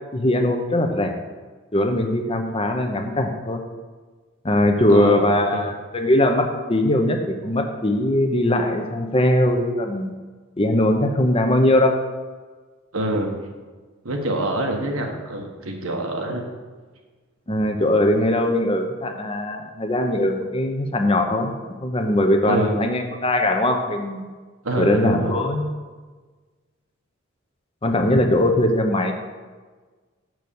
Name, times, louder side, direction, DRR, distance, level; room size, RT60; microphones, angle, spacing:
voice 1, 0.1-1.2 1.7-3.6 4.4-10.1 10.6-12.0 17.5-21.5 21.8-24.2 24.8-25.7 27.8-29.1, left 1 dB, 25° left, 5 dB, 0.8 m, -20 dB
voice 2, 4.9-5.6 12.9-13.3 14.0-16.4 22.5-22.8 24.6-25.4, right 1 dB, 85° right, 2 dB, 1.3 m, -25 dB
6.3 x 6.1 x 7.0 m, 1.4 s
head